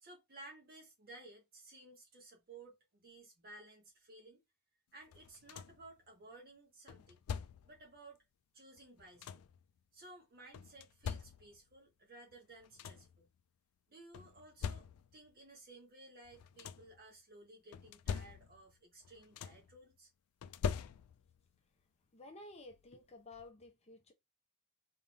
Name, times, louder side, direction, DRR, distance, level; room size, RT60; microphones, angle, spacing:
voice 1, 0.0-4.4 4.9-7.2 7.6-8.2 8.5-9.4 9.9-13.3 13.9-14.9 15.1-20.1, right 2 dB, 45° right, 1.8 m, -57 dB
sound 1, 5.1-5.9 6.9-7.8 8.8-9.6 10.5-11.7 12.3-12.4 12.6-13.2 14.1-15.3 16.2-17.0 17.7-18.8 19.0-19.8 20.4-21.4 22.7-22.8 23.3-23.5, left 7 dB, 70° left, 0.4 m, -43 dB
voice 2, 22.1-24.1, left 2 dB, 30° left, 0.8 m, -53 dB
4.1 x 3.7 x 2.7 m
head